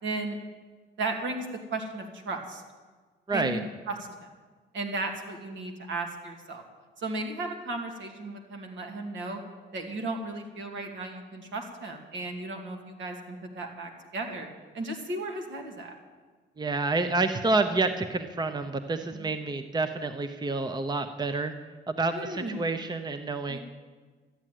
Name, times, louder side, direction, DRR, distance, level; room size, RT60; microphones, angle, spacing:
voice 1, 0.0-0.4 1.0-2.6 3.3-4.3 4.7-6.6 7.0-9.4 9.7-14.5 14.7-16.0 19.1-19.3 22.1-22.6 23.5-23.6, right 2 dB, 70° right, 3 dB, 2.4 m, -35 dB
voice 2, 3.3-3.6 16.6-21.5 21.9-23.6, right 3 dB, 20° right, 9 dB, 0.8 m, -28 dB
13.0 x 8.8 x 9.2 m, 1.4 s
cardioid pair, 90°, 20 cm